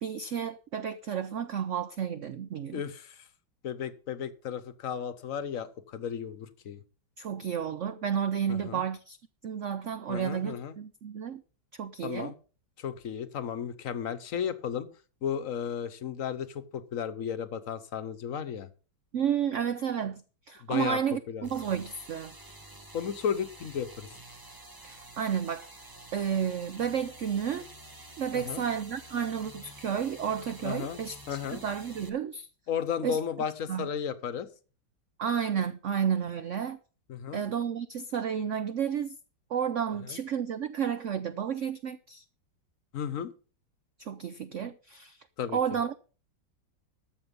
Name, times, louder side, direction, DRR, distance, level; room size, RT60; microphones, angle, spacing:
voice 1, 0.0-2.8 7.2-9.2 9.4-11.4 11.7-12.3 19.1-20.2 20.5-22.3 24.8-25.7 26.1-27.7 28.2-32.5 33.0-33.2 33.7-33.9 35.2-36.8 37.3-39.2 39.5-42.2 44.0-45.2 45.5-45.9, right 8 dB, 85° right, 0.6 m, -31 dB
voice 2, 2.7-3.3 3.6-6.8 8.5-8.8 10.1-10.7 12.0-12.3 12.8-14.9 15.2-18.7 20.6-21.0 21.3-21.5 22.9-24.1 28.3-28.6 30.6-31.0 31.3-31.6 32.7-34.5 37.1-37.4 40.1-40.2 42.9-43.3 45.4-45.6, left 8 dB, 55° left, 1.1 m, -34 dB
sound 1, 21.4-32.1, right 1 dB, 15° right, 0.8 m, -49 dB
13.0 x 7.3 x 5.3 m
omnidirectional pair, 2.1 m